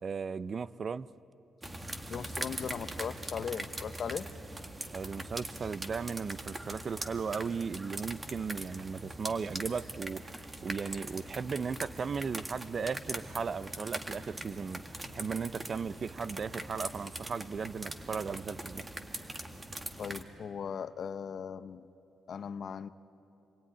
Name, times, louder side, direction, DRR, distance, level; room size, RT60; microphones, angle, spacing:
voice 1, 0.0-1.1 4.9-10.3 10.6-18.8, right 5 dB, 50° right, 0.6 m, -36 dB
sound 1, 1.6-20.2, right 1 dB, 20° right, 1.9 m, -42 dB
voice 2, 2.1-4.3 20.0-21.9 22.3-22.9, left 7 dB, 65° left, 0.7 m, -38 dB
27.5 x 21.5 x 10.0 m
cardioid pair, 85°, 0 cm